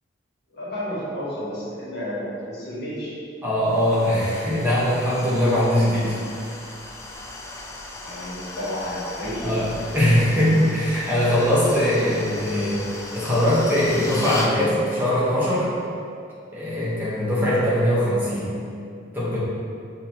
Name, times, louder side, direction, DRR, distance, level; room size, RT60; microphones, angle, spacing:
voice 1, 0.5-3.2 8.0-9.6, equal, 60° left, -9 dB, 1.4 m, -31 dB
voice 2, 3.4-6.2 9.4-9.7 9.9-12.8 13.1-15.7 16.5-18.5 19.1-19.4, left 1 dB, 10° right, -9 dB, 0.9 m, -21 dB
sound 1, 3.7-14.5, left 2 dB, 15° left, 0.3 m, -37 dB
6.2 x 2.7 x 2.7 m, 2.5 s
head